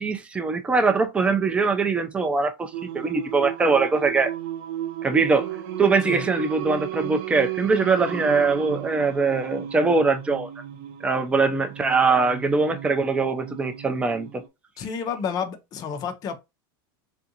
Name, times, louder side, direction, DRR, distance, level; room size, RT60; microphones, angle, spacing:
voice 1, 0.0-4.3 5.0-5.5 5.8-10.5 11.0-14.3, right 4 dB, 10° right, 0.4 m, -22 dB
Singing, 2.7-14.5, right 12 dB, 55° right, 0.6 m, -34 dB
voice 2, 14.8-16.4, left 6 dB, 35° left, 0.6 m, -30 dB
3.6 x 2.5 x 2.7 m
supercardioid pair, 145°, 12 cm